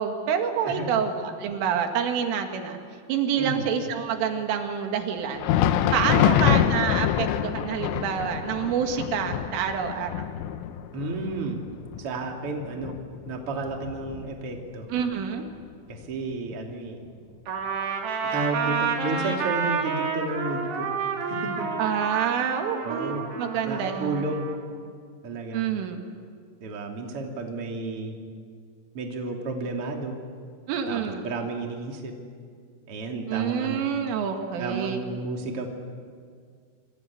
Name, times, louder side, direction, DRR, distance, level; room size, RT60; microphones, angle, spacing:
voice 1, 0.0-2.8 3.1-5.5 5.9-10.2 14.9-15.5 21.8-24.2 25.5-26.1 30.7-31.3 33.3-35.0, right 7 dB, 90° right, 4 dB, 4.6 m, -27 dB
voice 2, 3.4-3.7 6.1-6.4 10.9-11.6 12.0-13.0 13.3-14.9 15.9-17.0 18.3-20.9 21.3-21.7 22.8-23.3 23.6-24.5 25.2-25.6 26.6-28.2 28.9-30.2 30.9-32.1 32.9-33.9 34.6-35.7, right 3 dB, 35° right, 1 dB, 3.1 m, -32 dB
Thunder, 5.2-14.7 15.0-15.2 15.9-16.1 17.1-17.2, left 10 dB, 90° left, 3.6 m, -26 dB
Trumpet, 17.5-24.6, right 5 dB, 60° right, 4.4 m, -30 dB
27.0 x 25.5 x 8.5 m, 2.1 s
omnidirectional pair, 5.6 m